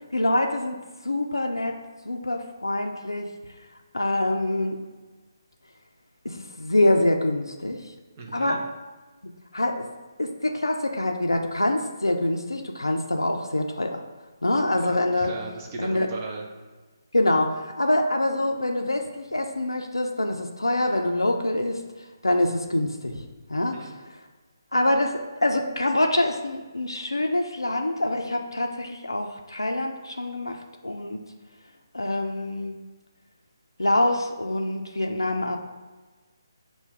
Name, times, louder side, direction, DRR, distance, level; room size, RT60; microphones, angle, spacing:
voice 1, 0.1-1.8 2.0-3.3 3.9-4.8 6.2-7.8 8.3-8.7 9.5-9.9 10.2-14.0 14.4-15.3 15.8-16.1 17.1-23.2 23.5-23.9 24.7-31.2 31.9-32.8 33.8-35.6, left 1 dB, 90° left, 3 dB, 0.4 m, -25 dB
voice 2, 8.1-8.6 14.8-14.9 15.2-16.5 23.5-23.9, right 3 dB, 30° right, 0 dB, 0.5 m, -37 dB
5.6 x 2.2 x 3.4 m, 1.3 s
figure-of-eight pair, 145°, 2 cm